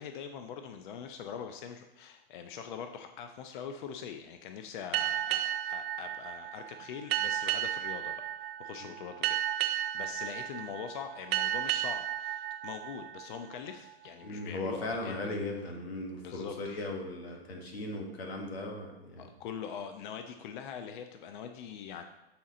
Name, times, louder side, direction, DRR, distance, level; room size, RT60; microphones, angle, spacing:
voice 1, 0.0-15.8 16.1-16.9 17.3-17.4 19.2-22.0, left 7 dB, 55° left, 6 dB, 0.5 m, -43 dB
sound 1, 4.9-14.1, right 12 dB, 75° right, 0.5 m, -34 dB
voice 2, 14.2-19.3, left 2 dB, 90° left, 2 dB, 1.5 m, -37 dB
7.0 x 4.3 x 3.7 m, 0.94 s
hypercardioid pair, 140°, 30 cm